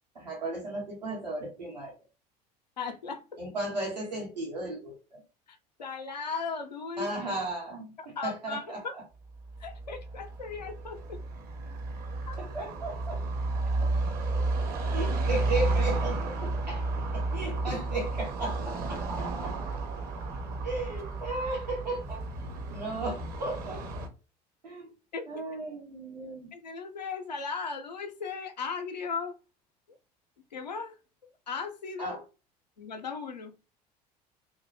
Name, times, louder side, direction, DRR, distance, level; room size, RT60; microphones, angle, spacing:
voice 1, 0.1-1.9 3.4-5.2 7.0-8.8 12.4-13.2 13.8-13.9 14.9-19.6 20.6-23.9 24.6-24.9 25.3-26.5 32.0-32.2, right 2 dB, 85° right, 0.9 m, -35 dB
voice 2, 2.8-3.4 5.5-7.1 8.0-8.9 9.6-11.2 12.3-12.4 25.1-25.2 26.5-29.4 30.5-31.0 31.5-32.2 32.8-33.5, left 5 dB, 85° left, 0.4 m, -37 dB
Car passing by / Traffic noise roadway noise, 9.4-24.1, right 2 dB, 45° right, 0.7 m, -32 dB
2.4 x 2.1 x 3.1 m
figure-of-eight pair, 65°, 21 cm